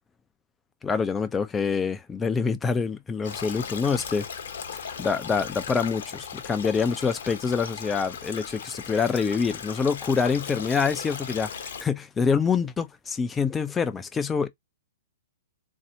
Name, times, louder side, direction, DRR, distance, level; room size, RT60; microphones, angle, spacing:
voice 1, 0.8-4.3 5.0-14.5, left 5 dB, 15° left, 0.4 m, -26 dB
Stream, 3.2-11.8, left 6 dB, 60° left, 0.8 m, -37 dB
4.0 x 2.7 x 2.5 m
figure-of-eight pair, 115°, 0 cm